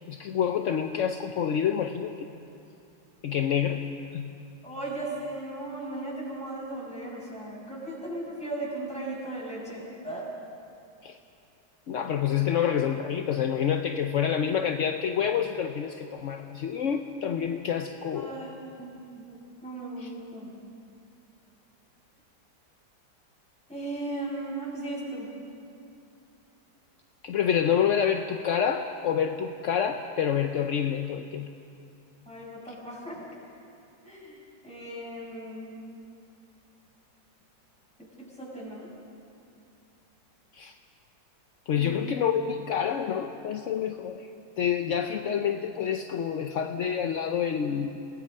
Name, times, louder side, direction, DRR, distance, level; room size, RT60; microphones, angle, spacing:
voice 1, 0.1-2.3 3.2-3.8 4.1-4.3 11.0-11.2 11.9-18.3 20.0-20.1 27.2-31.5 40.5-40.7 41.7-44.3 44.6-48.0, left 8 dB, 60° left, 5 dB, 0.8 m, -27 dB
voice 2, 4.6-10.3 18.1-20.5 23.7-25.3 32.2-33.2 34.0-35.8 38.0-38.9 41.7-41.9, right 2 dB, 5° left, -6 dB, 6.7 m, -37 dB
28.0 x 18.0 x 5.4 m, 2.6 s
omnidirectional pair, 2.0 m